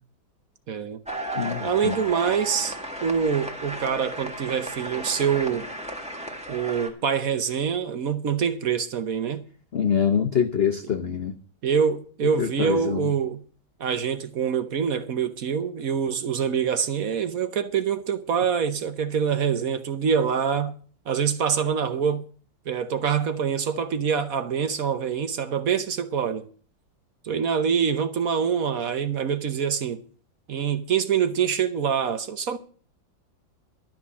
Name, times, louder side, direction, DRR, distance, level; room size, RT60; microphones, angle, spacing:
voice 1, 0.7-1.0 1.6-2.8 3.0-5.7 6.5-9.4 11.6-13.4 13.8-20.7 21.1-22.2 22.7-26.5 27.2-30.0 30.5-32.6, right 7 dB, 55° right, 1.1 m, -25 dB
sound 1, 1.1-6.9, right 1 dB, 5° right, 1.4 m, -34 dB
voice 2, 1.4-1.9 9.7-11.3 12.4-13.0, left 7 dB, 75° left, 0.5 m, -24 dB
12.5 x 6.1 x 8.4 m
omnidirectional pair, 2.1 m